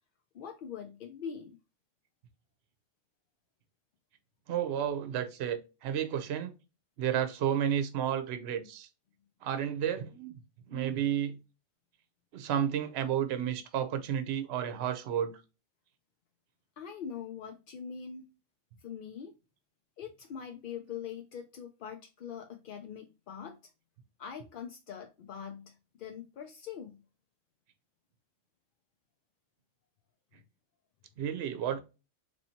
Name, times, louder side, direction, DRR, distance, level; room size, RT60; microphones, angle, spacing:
voice 1, 0.3-1.6 16.8-18.2 18.8-19.4 20.0-23.6 24.2-27.0, left 7 dB, 60° left, 0.6 m, -43 dB
voice 2, 4.5-6.5 7.0-8.9 9.4-10.4 10.7-11.4 12.3-15.4 31.2-31.8, right 9 dB, 65° right, 0.9 m, -32 dB
4.1 x 3.1 x 2.8 m
omnidirectional pair, 1.3 m